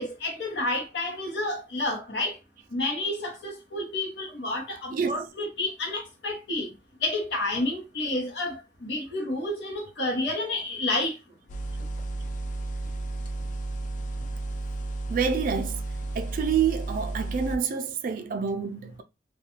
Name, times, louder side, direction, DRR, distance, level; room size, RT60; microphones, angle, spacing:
voice 1, 0.0-2.4 2.7-6.7 7.0-11.1, left 2 dB, 75° left, 1.0 m, -30 dB
voice 2, 4.9-5.3 11.7-11.8 15.1-15.8 16.2-19.0, right 6 dB, 50° right, 0.3 m, -28 dB
sound 1, 11.5-17.6, right 2 dB, 45° left, 0.3 m, -33 dB
2.4 x 2.2 x 2.9 m
head